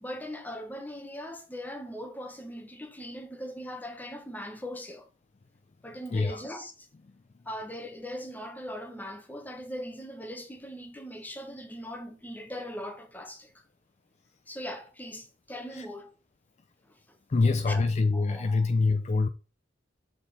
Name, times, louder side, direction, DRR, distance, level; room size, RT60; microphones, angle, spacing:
voice 1, 0.0-5.1 5.8-6.9 7.5-13.6 14.5-16.1 16.9-17.2 17.7-17.9 18.1-18.7, equal, 10° left, 0.9 m, -40 dB
voice 2, 6.1-6.4 15.7-15.9 17.3-19.3, left 3 dB, 35° left, 0.4 m, -25 dB
6.7 x 3.7 x 4.1 m
head